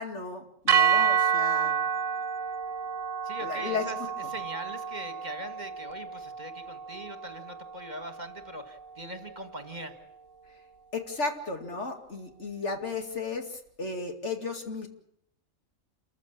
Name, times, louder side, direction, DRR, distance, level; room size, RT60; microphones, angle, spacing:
voice 1, 0.0-1.8 3.4-3.8 10.9-14.9, left 4 dB, 65° left, 5 dB, 2.7 m, -34 dB
sound 1, 0.7-8.9, right 7 dB, 90° right, 1.4 m, -29 dB
voice 2, 3.2-4.0 4.3-9.9, right 1 dB, 35° right, 8 dB, 1.8 m, -41 dB
28.0 x 14.5 x 8.6 m, 0.76 s
omnidirectional pair, 1.3 m